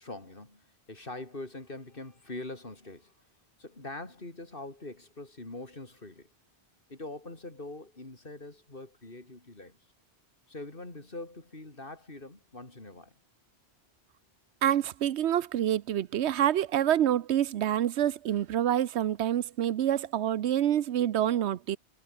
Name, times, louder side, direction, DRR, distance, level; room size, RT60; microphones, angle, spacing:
voice 1, 0.0-3.1 3.6-6.3 6.9-9.8 10.5-13.2, left 2 dB, 55° left, 3.8 m, -43 dB
voice 2, 14.6-21.8, right 11 dB, 85° right, 1.0 m, -27 dB
omnidirectional pair, 1.1 m